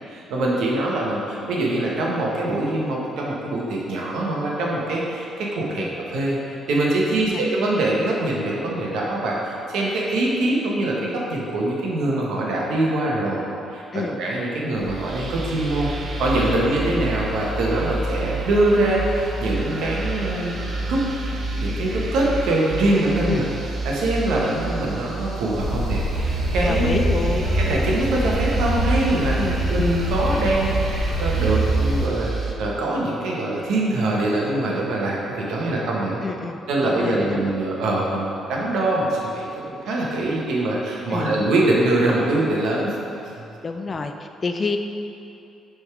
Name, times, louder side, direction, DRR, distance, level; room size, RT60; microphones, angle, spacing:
voice 1, 0.1-13.4 13.7-15.9 16.2-20.6 20.9-21.0 21.6-27.1 27.3-29.4 29.7-32.3 32.6-36.2 36.7-42.9, right 2 dB, 85° right, -3 dB, 1.1 m, -23 dB
voice 2, 7.1-7.4 13.9-14.2 23.3-23.5 26.6-27.5 29.4-29.8 36.2-37.5 41.1-41.3 43.6-44.8, left 4 dB, 35° left, 6 dB, 0.4 m, -29 dB
sound 1, 14.8-32.5, right 2 dB, 50° right, 0.6 m, -29 dB
sound 2, 25.6-32.1, right 1 dB, 65° left, 0.8 m, -24 dB
6.3 x 3.6 x 4.7 m, 2.7 s
cardioid pair, 90°, 0 cm